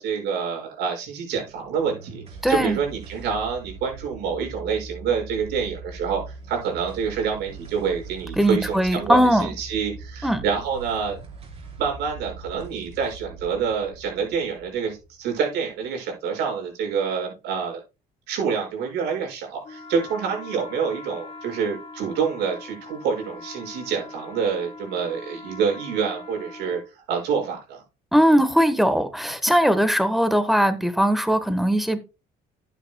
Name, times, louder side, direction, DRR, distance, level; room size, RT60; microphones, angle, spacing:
voice 1, 0.0-6.2 6.5-11.2 11.8-17.8 18.3-26.8 27.1-27.8, right 6 dB, 80° right, 0 dB, 5.9 m, -27 dB
sound 1, 1.4-16.0, right 4 dB, 40° right, 4.6 m, -41 dB
voice 2, 2.4-2.8 8.4-9.5 10.2-10.4 28.1-32.0, equal, ahead, 10 dB, 1.3 m, -20 dB
sound 2, 19.6-26.8, left 3 dB, 35° left, 2.8 m, -41 dB
12.5 x 9.2 x 2.3 m, 0.30 s
cardioid pair, 110°, 17 cm